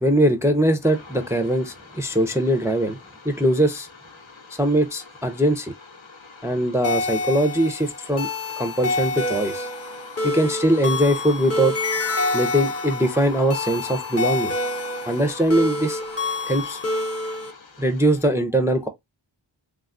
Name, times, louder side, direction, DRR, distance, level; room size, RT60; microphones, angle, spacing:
voice 1, 0.0-3.0 3.3-3.9 4.6-5.7 6.4-8.3 8.6-9.7 10.2-11.8 12.3-14.5 15.1-16.0 16.5-16.8 17.8-18.9, right 1 dB, 5° right, 0.4 m, -21 dB
sound 1, 0.8-18.3, left 4 dB, 80° left, 0.8 m, -41 dB
sound 2, 6.8-17.5, left 2 dB, 30° left, 0.7 m, -27 dB
3.4 x 2.3 x 2.4 m
wide cardioid pair, 55°, 46 cm